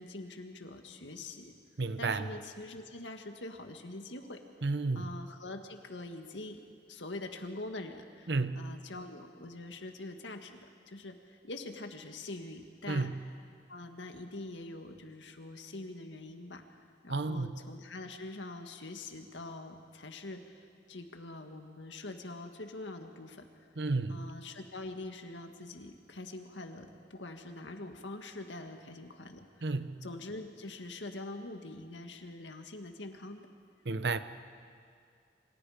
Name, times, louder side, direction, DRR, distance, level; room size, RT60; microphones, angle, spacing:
voice 1, 0.0-1.5 2.0-4.4 4.9-6.6 6.9-13.1 13.7-16.6 17.0-23.4 24.1-33.5, left 2 dB, 90° left, 5 dB, 1.9 m, -44 dB
voice 2, 1.8-2.2 4.6-5.1 8.3-8.6 12.9-13.1 17.1-17.5 23.8-24.2 29.6-30.0 33.9-34.2, right 3 dB, 65° right, 12 dB, 0.9 m, -31 dB
28.0 x 26.0 x 5.1 m, 2.3 s
head